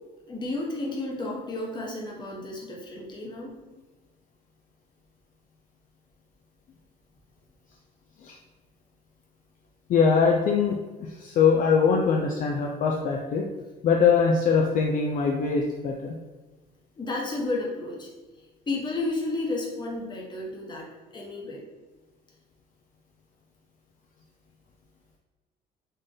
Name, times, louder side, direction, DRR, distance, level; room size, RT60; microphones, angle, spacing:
voice 1, 0.3-3.6 17.0-18.1 18.7-21.6, left 2 dB, 25° left, -3 dB, 1.0 m, -32 dB
voice 2, 9.9-10.8 11.2-13.4 13.8-16.1, left 5 dB, 50° left, 0 dB, 0.4 m, -22 dB
3.9 x 2.4 x 3.8 m, 1.2 s
cardioid pair, 110°, 17 cm